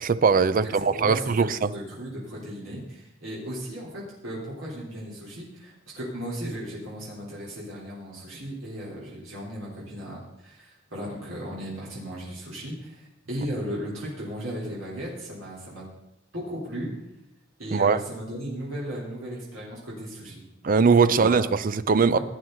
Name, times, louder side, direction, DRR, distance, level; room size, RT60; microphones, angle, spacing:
voice 1, 0.0-1.7 17.7-18.0 20.6-22.2, right 5 dB, 45° right, 15 dB, 0.5 m, -21 dB
voice 2, 0.6-15.8 16.3-16.9 17.6-20.4 21.0-21.4 22.0-22.2, equal, 80° right, -6 dB, 3.9 m, -36 dB
17.0 x 9.5 x 4.0 m, 0.86 s
head